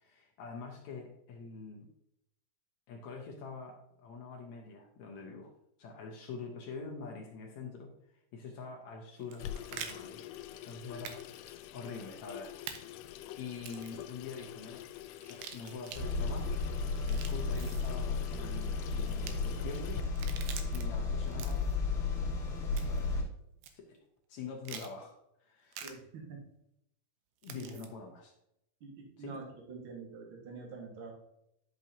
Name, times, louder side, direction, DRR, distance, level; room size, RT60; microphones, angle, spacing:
voice 1, 0.0-1.9 2.9-5.5 5.8-7.9 8.3-11.2 11.7-12.6 13.4-14.8 15.3-16.5 17.0-20.0 20.7-21.6 22.2-22.4 22.7-23.2 23.7-24.0 24.3-25.8 27.4-28.3 29.2-29.4, left 4 dB, 70° left, 1 dB, 1.7 m, -45 dB
sound 1, 9.2-9.9 11.0-11.2 11.5-11.6 12.7-12.8 13.6-14.0 15.2-16.0 16.9-17.9 19.1-19.3 20.0-20.8 21.3-21.8 22.8-23.1 23.6-23.7 24.6-24.9 25.7-25.9 27.4-27.9, right 8 dB, 80° right, 2.6 m, -45 dB
Water tap faucet / Sink (filling or washing), 9.4-20.0, left 12 dB, 90° left, 1.9 m, -47 dB
Room tone with computer noise, 15.9-23.2, left 4 dB, 40° left, 2.0 m, -33 dB
voice 2, 25.8-26.4 27.5-27.7 28.8-31.1, right 4 dB, 50° right, 0 dB, 1.6 m, -46 dB
10.5 x 6.2 x 2.8 m, 0.78 s
omnidirectional pair, 4.4 m